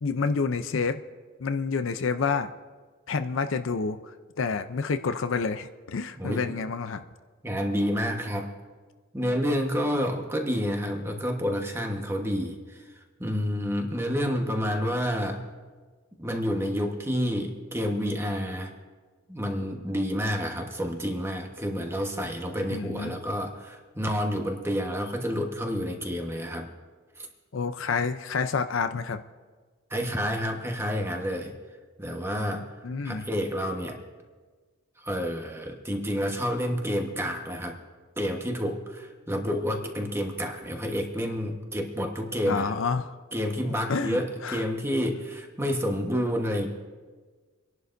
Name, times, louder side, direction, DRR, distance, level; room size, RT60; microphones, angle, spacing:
voice 1, 0.0-1.0 1.4-2.5 3.1-7.0 22.7-23.2 27.5-29.2 32.5-33.3 42.5-43.2 43.9-44.6, left 5 dB, 65° left, 9 dB, 0.6 m, -29 dB
voice 2, 7.4-8.5 9.1-12.8 13.2-15.4 16.2-18.7 19.3-26.7 27.2-27.3 29.9-31.5 32.0-32.7 33.0-34.0 35.0-37.8 38.2-42.7 43.3-46.7, equal, 10° right, 2 dB, 1.2 m, -29 dB
27.0 x 11.0 x 2.6 m, 1.4 s
head